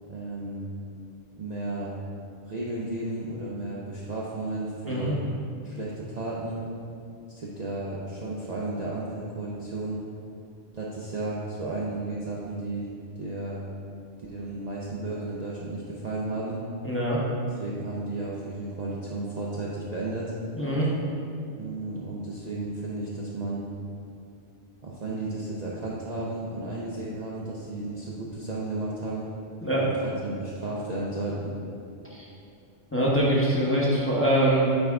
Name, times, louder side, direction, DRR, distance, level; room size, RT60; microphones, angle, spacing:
voice 1, 0.1-0.7 1.4-1.9 2.4-5.2 5.6-6.6 7.3-10.0 10.7-12.9 13.1-13.6 14.2-16.6 17.6-20.3 21.5-23.6 24.8-29.3 29.7-31.6, right 2 dB, 45° right, -5 dB, 0.6 m, -33 dB
voice 2, 16.8-17.2 20.6-20.9 29.6-29.9 32.9-34.7, right 1 dB, 10° left, -6 dB, 0.9 m, -23 dB
8.8 x 3.5 x 3.6 m, 2.5 s
omnidirectional pair, 1.3 m